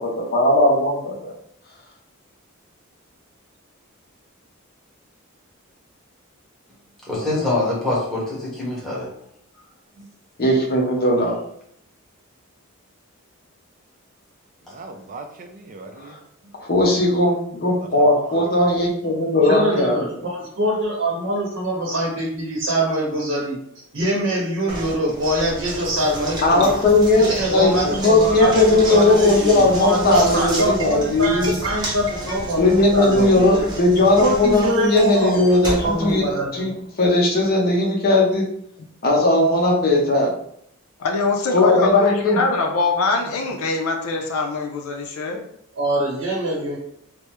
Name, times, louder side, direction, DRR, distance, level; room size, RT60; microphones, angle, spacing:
voice 1, 0.2-1.3 10.4-11.4 16.0-16.1 16.6-20.0 26.4-31.5 32.6-38.5 39.0-40.3 41.5-42.4, left 2 dB, 45° left, -1 dB, 0.7 m, -18 dB
voice 2, 7.0-9.1 10.0-10.1, left 2 dB, ahead, -6 dB, 1.0 m, -24 dB
voice 3, 14.6-16.2 17.8-18.5, right 3 dB, 40° right, 3 dB, 0.4 m, -39 dB
voice 4, 19.5-23.6 23.9-26.7 27.2-33.5 34.2-35.4 35.8-36.5 45.8-46.8, right 1 dB, 65° right, -3 dB, 0.8 m, -24 dB
Knock, 24.7-36.8, right 1 dB, 20° right, 0.7 m, -31 dB
voice 5, 41.0-45.4, left 3 dB, 85° left, 3 dB, 0.5 m, -23 dB
3.4 x 2.0 x 3.0 m, 0.69 s
head